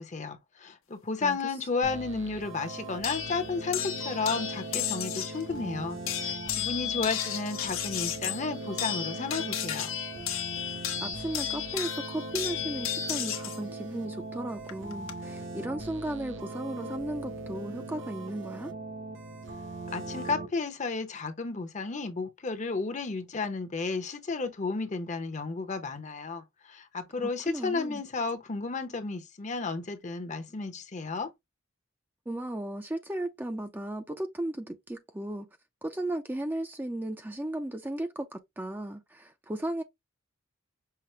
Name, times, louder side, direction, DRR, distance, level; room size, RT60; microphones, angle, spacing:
voice 1, 0.0-9.9 19.9-31.3, left 4 dB, 35° left, 0.7 m, -33 dB
voice 2, 1.2-1.5 11.0-18.7 27.2-28.0 32.3-35.5 35.8-39.8, right 1 dB, 10° right, 0.4 m, -35 dB
sound 1, 1.8-20.5, right 2 dB, 70° right, 1.1 m, -40 dB
sound 2, 3.0-5.4 6.1-13.6 14.7-15.1, left 10 dB, 85° left, 0.9 m, -34 dB
5.7 x 2.0 x 3.1 m
head